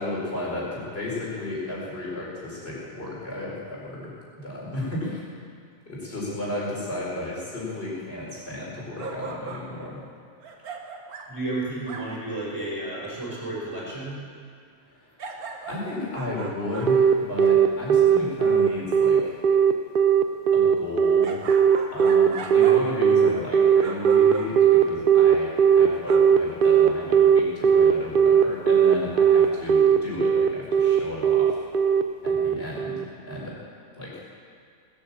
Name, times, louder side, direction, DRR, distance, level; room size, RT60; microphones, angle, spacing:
voice 1, 0.0-5.2 5.9-10.0 15.7-19.4 20.5-21.4 21.9-31.6 32.2-33.6 34.0-34.3, left 2 dB, 40° left, -5 dB, 4.6 m, -33 dB
sound 1, 9.0-9.8 10.4-11.4 11.9-12.4 15.2-17.6 21.2-23.0 23.3-23.5 23.8-24.7 26.1-26.2, right 4 dB, 85° right, 1.7 m, -38 dB
voice 2, 11.3-14.2, right 2 dB, 15° right, -6 dB, 4.9 m, -32 dB
Telephone, 16.9-33.0, right 8 dB, 55° right, 0.6 m, -18 dB
20.0 x 8.9 x 7.3 m, 2.2 s
omnidirectional pair, 1.5 m